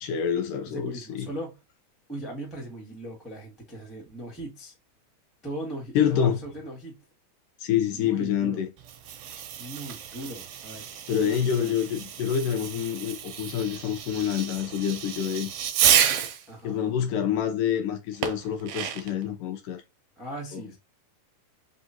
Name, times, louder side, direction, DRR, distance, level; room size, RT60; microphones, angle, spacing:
voice 1, 0.0-1.3 6.0-6.4 7.6-8.7 11.1-15.5 16.6-19.8 20.5-20.6, left 9 dB, 75° left, 2.3 m, -27 dB
voice 2, 0.7-1.6 2.1-4.7 5.4-7.0 7.8-8.6 9.6-11.7 16.5-16.8 20.2-20.8, right 1 dB, ahead, 0.4 m, -39 dB
Fireworks, 8.8-16.5 18.2-19.2, right 9 dB, 75° right, 1.6 m, -29 dB
5.4 x 2.5 x 2.7 m
omnidirectional pair, 3.8 m